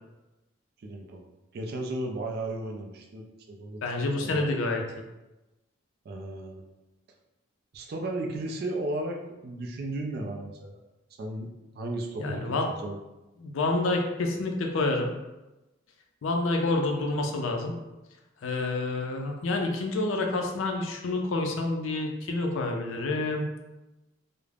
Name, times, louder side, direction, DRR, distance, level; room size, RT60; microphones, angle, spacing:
voice 1, 0.8-1.2 1.5-4.5 6.1-6.6 7.7-9.2 9.4-10.8 11.2-13.0, right 2 dB, 45° right, 2 dB, 0.3 m, -35 dB
voice 2, 3.8-4.8 12.2-12.7 13.4-15.1 16.2-17.7 18.4-23.6, left 2 dB, 65° left, 3 dB, 0.4 m, -28 dB
2.3 x 2.0 x 3.2 m, 1.0 s
head